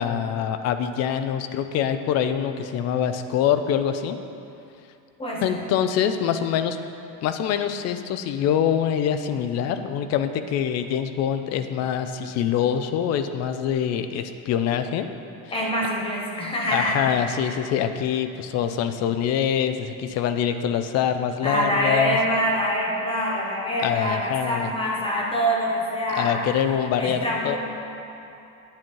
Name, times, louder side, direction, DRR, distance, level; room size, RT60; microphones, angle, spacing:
voice 1, 0.0-4.2 5.4-6.8 7.2-15.1 16.7-22.2 23.8-24.7 26.2-27.6, left 9 dB, 40° left, 9 dB, 0.5 m, -24 dB
voice 2, 5.2-5.7 15.5-17.0 21.4-26.5 27.0-27.6, equal, 15° left, -3 dB, 1.3 m, -25 dB
10.5 x 8.8 x 4.6 m, 2.7 s
cardioid pair, 165°, 39 cm